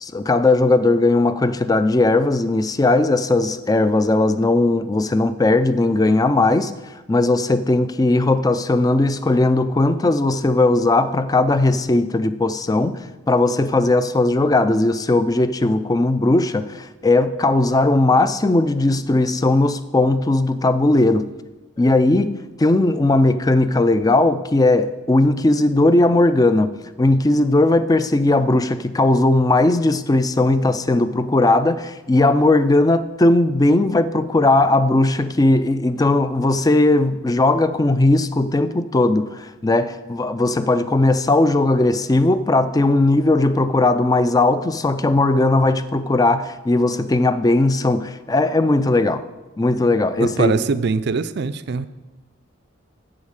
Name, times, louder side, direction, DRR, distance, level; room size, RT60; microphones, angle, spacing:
voice 1, 0.0-6.7 7.1-21.3 21.8-26.7 27.0-49.2 49.6-50.6, left 2 dB, 20° left, 0.4 m, -18 dB
voice 2, 50.2-51.9, right 4 dB, 55° right, 0.4 m, -22 dB
8.6 x 7.3 x 6.5 m
head